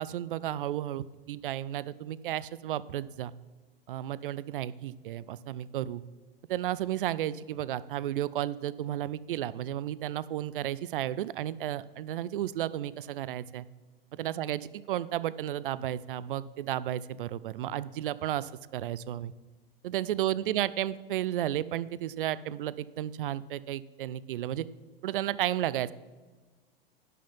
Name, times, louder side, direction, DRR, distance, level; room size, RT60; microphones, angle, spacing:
voice 1, 0.0-3.3 3.9-6.0 6.5-13.6 14.1-14.6 14.9-19.3 19.8-24.7 25.0-25.9, right 12 dB, 65° right, 18 dB, 0.5 m, -33 dB
11.0 x 5.7 x 5.7 m, 1.3 s
figure-of-eight pair, 95°, 30 cm